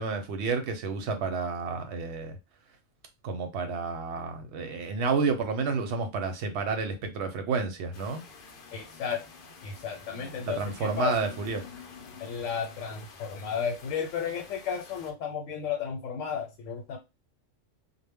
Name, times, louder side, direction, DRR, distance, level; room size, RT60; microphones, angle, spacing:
voice 1, 0.0-2.4 3.2-8.2 10.4-11.6, right 4 dB, 65° right, 0.8 m, -30 dB
sound 1, 7.9-15.1, left 5 dB, 60° left, 0.6 m, -49 dB
voice 2, 8.7-9.2 9.6-11.1 12.2-17.0, left 7 dB, 85° left, 1.0 m, -33 dB
2.1 x 2.1 x 3.4 m
omnidirectional pair, 1.3 m